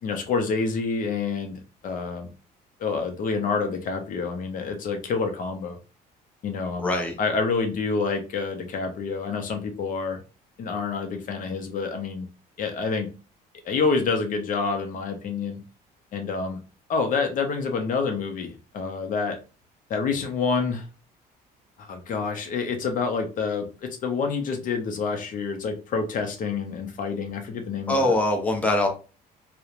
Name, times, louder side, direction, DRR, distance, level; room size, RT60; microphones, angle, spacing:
voice 1, 0.0-2.3 2.8-5.8 6.4-6.9 7.2-10.2 10.6-12.3 12.6-13.1 13.6-15.6 16.1-16.6 16.9-19.4 19.9-20.9 21.8-28.1, left 4 dB, 50° left, 5 dB, 0.5 m, -27 dB
voice 2, 6.8-7.1 27.9-28.9, left 1 dB, 10° left, 1 dB, 0.6 m, -22 dB
2.8 x 2.1 x 2.4 m, 0.33 s
cardioid pair, 110°, 17 cm